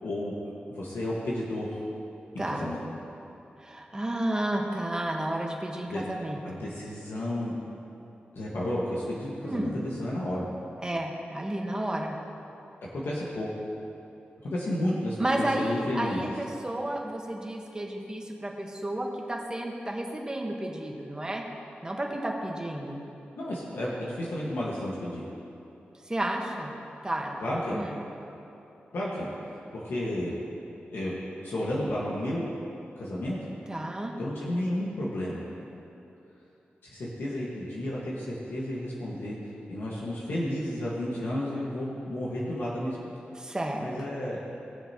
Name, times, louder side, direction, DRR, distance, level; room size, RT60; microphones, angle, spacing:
voice 1, 0.0-0.3 0.7-1.9 2.3-2.8 5.9-6.0 6.4-7.5 8.3-10.4 12.9-13.5 14.4-16.2 23.4-25.2 27.4-27.8 28.9-29.3 29.7-30.3 30.9-31.1 31.4-32.4 33.0-33.4 34.2-35.4 36.8-39.4 39.7-43.1 43.8-44.4, left 1 dB, 80° left, -6 dB, 1.5 m, -32 dB
voice 2, 2.4-2.7 3.6-6.7 9.4-9.8 10.8-12.2 15.2-21.4 21.8-23.0 26.1-26.7 27.0-27.4 27.7-28.0 33.7-34.1 43.3-43.9, right 1 dB, 20° right, 0 dB, 1.3 m, -32 dB
19.0 x 6.7 x 2.9 m, 2.9 s
wide cardioid pair, 85°, 4 cm